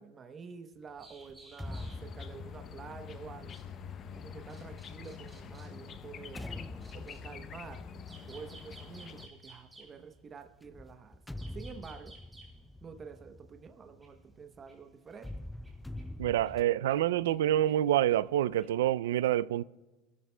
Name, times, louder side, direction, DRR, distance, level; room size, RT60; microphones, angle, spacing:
voice 1, 0.0-3.6 4.1-6.5 6.9-7.9 8.3-11.2 11.5-12.1 12.8-15.3, right 5 dB, 30° right, 0.9 m, -48 dB
sound 1, 0.8-18.8, right 2 dB, 10° right, 3.5 m, -59 dB
sound 2, 1.3-5.0 5.7-9.4 10.6-14.6 15.1-16.6, left 1 dB, 5° left, 0.3 m, -46 dB
sound 3, 1.6-9.3, left 7 dB, 35° left, 0.8 m, -46 dB
voice 2, 16.2-19.6, right 12 dB, 90° right, 0.3 m, -27 dB
21.0 x 14.0 x 2.2 m
supercardioid pair, 115°, 0 cm